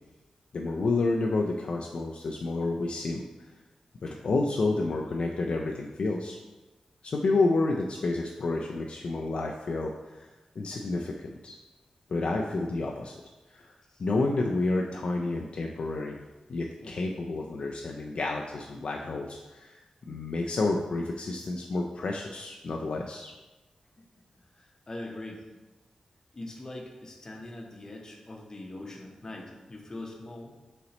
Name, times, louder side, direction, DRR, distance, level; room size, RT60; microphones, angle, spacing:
voice 1, 0.5-3.2 4.0-6.4 7.0-10.3 10.6-11.5 12.1-13.1 13.5-13.7 14.0-16.2 16.5-19.8 20.1-23.3, left 3 dB, 55° left, 0 dB, 0.3 m, -30 dB
voice 2, 24.5-25.4 26.3-30.6, left 2 dB, 30° left, 0 dB, 0.7 m, -42 dB
4.1 x 4.0 x 2.9 m, 1.1 s
wide cardioid pair, 145°, 2 cm